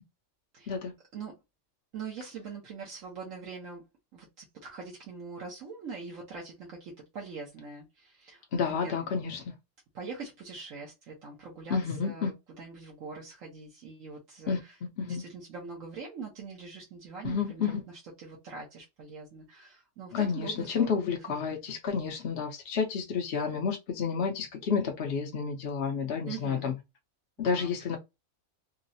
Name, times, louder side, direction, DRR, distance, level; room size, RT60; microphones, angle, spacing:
voice 1, 1.9-3.9 4.1-9.0 9.9-14.7 15.0-20.9 26.3-26.8 27.4-27.8, right 5 dB, 75° right, 1.3 m, -43 dB
voice 2, 8.5-9.5 11.7-12.3 14.5-14.6 15.0-15.2 17.2-17.8 20.1-26.7 27.4-28.0, left 6 dB, 60° left, 0.8 m, -30 dB
3.8 x 2.0 x 2.6 m
omnidirectional pair, 1.4 m